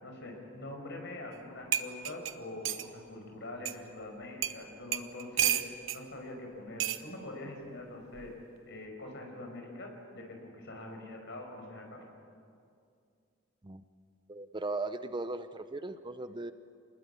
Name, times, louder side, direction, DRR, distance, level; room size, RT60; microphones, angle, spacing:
voice 1, 0.0-5.6 5.9-8.3 8.7-12.0, left 2 dB, 60° left, 2 dB, 5.8 m, -44 dB
sound 1, 1.3-1.4 1.7-2.9 3.7-3.8 4.4-4.6 4.9-6.0 6.8-7.0 8.1-8.4, right 10 dB, 70° right, 1.0 m, -31 dB
voice 2, 14.3-16.5, right 2 dB, 25° right, 11 dB, 0.6 m, -37 dB
27.0 x 20.0 x 8.3 m, 2.4 s
head